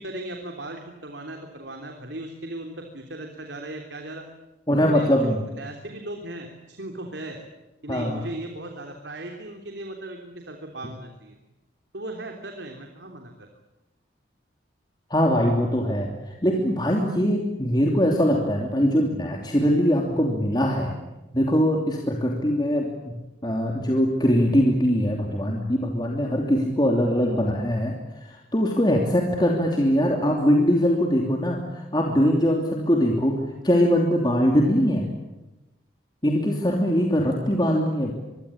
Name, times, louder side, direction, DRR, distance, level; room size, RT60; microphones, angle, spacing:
voice 1, 0.0-4.2 4.8-7.4 7.8-11.3 11.9-13.3, right 1 dB, 70° right, 3 dB, 3.4 m, -37 dB
voice 2, 4.7-5.4 7.9-8.2 15.1-20.9 21.3-28.0 28.2-35.1 36.2-38.1, equal, 20° left, 1 dB, 3.0 m, -22 dB
25.5 x 23.0 x 8.8 m, 1.0 s
head